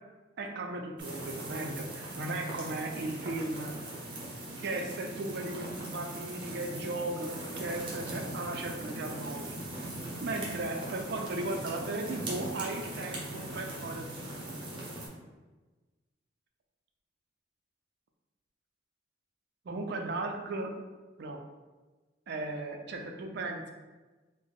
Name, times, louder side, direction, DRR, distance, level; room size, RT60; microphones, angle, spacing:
voice 1, 0.4-3.7 4.6-9.6 10.2-14.1 14.7-14.9 19.7-20.7 21.2-21.4 22.3-23.7, right 2 dB, 55° right, 3 dB, 0.4 m, -36 dB
sound 1, 1.0-15.1, right 1 dB, 25° right, 0.7 m, -40 dB
3.6 x 2.1 x 3.5 m, 1.2 s
head